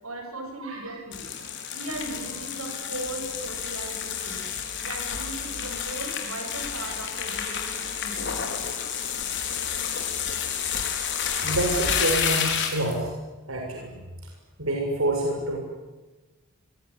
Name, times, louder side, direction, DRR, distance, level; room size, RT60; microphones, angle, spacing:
voice 1, 0.0-1.3 1.7-4.5 4.8-8.4, right 2 dB, 85° right, 4 dB, 8.0 m, -38 dB
voice 2, 0.6-0.9 9.8-9.9 11.1-13.1 13.5-13.9 14.2-14.3 14.6-15.6, right 1 dB, 70° right, 0 dB, 6.7 m, -28 dB
sound 1, 1.1-13.0, left 7 dB, 55° left, 5.0 m, -30 dB
26.0 x 23.0 x 9.9 m, 1.2 s
head